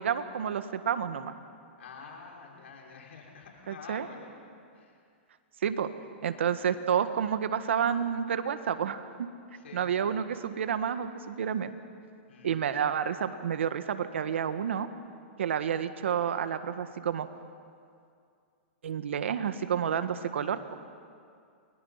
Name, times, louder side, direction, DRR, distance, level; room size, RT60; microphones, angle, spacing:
voice 1, 0.0-1.3 3.7-4.1 5.6-5.9 6.2-9.3 9.7-11.7 12.4-14.9 15.4-17.3 18.8-20.8, right 8 dB, 80° right, 10 dB, 1.6 m, -30 dB
voice 2, 1.8-5.1 9.5-10.0 12.3-13.0, left 5 dB, 80° left, 0 dB, 5.9 m, -49 dB
29.0 x 22.0 x 5.8 m, 2.3 s
hypercardioid pair, 135°, 6 cm